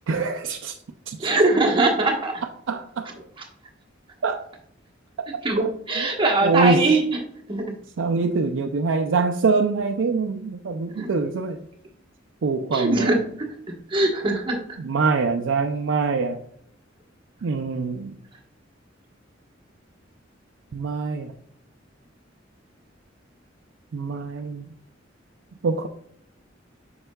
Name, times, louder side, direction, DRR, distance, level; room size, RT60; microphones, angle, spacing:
voice 1, 0.1-0.7 1.1-1.3 2.7-3.0 4.2-4.4 6.0-6.1 6.4-6.8 8.0-11.6 12.4-13.2 14.8-16.4 17.4-18.2 20.7-21.3 23.9-24.7 25.6-25.9, right 4 dB, 75° right, 4 dB, 0.4 m, -24 dB
voice 2, 1.2-2.4 3.4-3.5 5.4-7.0 7.5-7.7 10.9-11.1 12.7-13.5 13.9-14.8, right 2 dB, 25° right, 0 dB, 1.2 m, -22 dB
7.8 x 5.6 x 2.3 m, 0.69 s
head